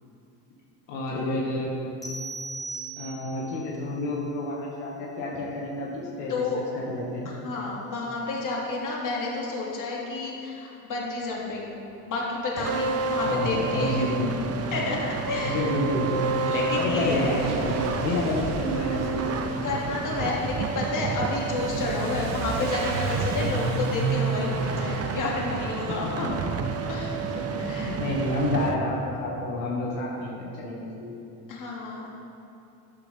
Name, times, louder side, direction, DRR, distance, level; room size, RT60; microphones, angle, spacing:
voice 1, 0.9-1.7 3.0-6.4 6.7-7.3 13.2-14.6 15.4-16.3 16.8-19.3 25.9-26.1 27.5-31.2, left 1 dB, 75° left, -4 dB, 2.1 m, -29 dB
sound 1, 2.0-3.6, right 3 dB, 10° left, 1.8 m, -37 dB
voice 2, 6.3-6.7 7.2-11.8 12.1-14.1 14.7-15.7 16.4-17.4 19.6-26.4 26.9-28.0 31.5-32.2, left 3 dB, 45° left, -3 dB, 2.6 m, -30 dB
Truck / Accelerating revving vroom, 12.3-12.4 12.6-26.0, right 3 dB, 65° right, 1.7 m, -34 dB
sound 2, 12.6-28.7, right 4 dB, 35° right, 0.9 m, -30 dB
13.0 x 9.1 x 3.6 m, 2.8 s
supercardioid pair, 90°, 44 cm